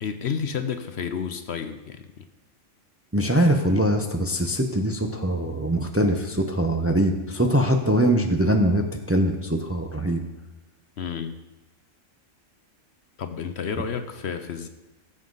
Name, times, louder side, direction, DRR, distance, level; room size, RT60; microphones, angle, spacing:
voice 1, 0.0-2.3 11.0-11.4 13.2-14.7, left 7 dB, 60° left, 8 dB, 0.9 m, -31 dB
voice 2, 3.1-10.2, right 1 dB, 15° right, 4 dB, 0.7 m, -22 dB
18.0 x 7.6 x 4.0 m, 1.0 s
omnidirectional pair, 1.4 m